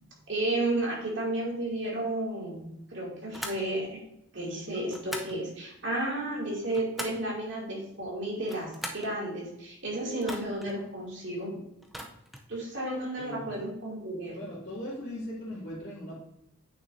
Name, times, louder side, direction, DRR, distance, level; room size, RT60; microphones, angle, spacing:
voice 1, 0.3-4.0 4.3-11.5 12.5-14.4, right 1 dB, 60° right, -3 dB, 2.5 m, -32 dB
sound 1, 3.3-3.7 4.9-5.4 6.4-7.3 8.4-9.1 10.2-10.7 11.8-12.5, equal, ahead, 0.5 m, -40 dB
voice 2, 13.2-13.5 14.3-16.2, equal, 50° left, -11 dB, 2.3 m, -39 dB
8.7 x 6.2 x 2.6 m, 0.80 s
head